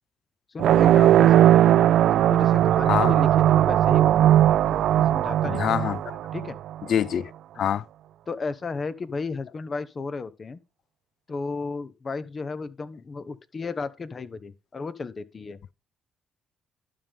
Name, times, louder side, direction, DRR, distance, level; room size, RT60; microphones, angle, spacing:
voice 1, 0.5-6.0 6.3-6.6 7.6-7.7 8.3-10.6 11.3-15.6, left 4 dB, 35° left, 0.9 m, -34 dB
sound 1, 0.6-6.7, right 12 dB, 80° right, 0.4 m, -18 dB
voice 2, 2.9-3.2 5.5-6.2 6.9-7.8, left 9 dB, 65° left, 0.4 m, -26 dB
12.0 x 5.4 x 3.6 m
cardioid pair, 90°, 0 cm